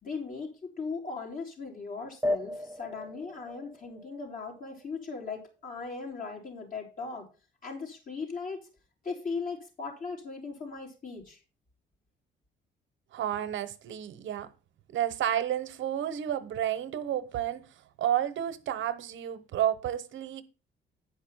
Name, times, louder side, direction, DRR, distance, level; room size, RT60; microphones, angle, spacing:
voice 1, 0.0-0.5 0.8-7.3 7.6-8.6 9.0-11.4, left 4 dB, 45° left, 3.9 m, -38 dB
sound 1, 2.2-5.2, left 1 dB, 10° right, 0.6 m, -36 dB
voice 2, 13.1-14.5 14.9-17.7 18.0-20.4, right 11 dB, 75° right, 1.0 m, -31 dB
10.0 x 5.3 x 5.6 m
cardioid pair, 90°, 20 cm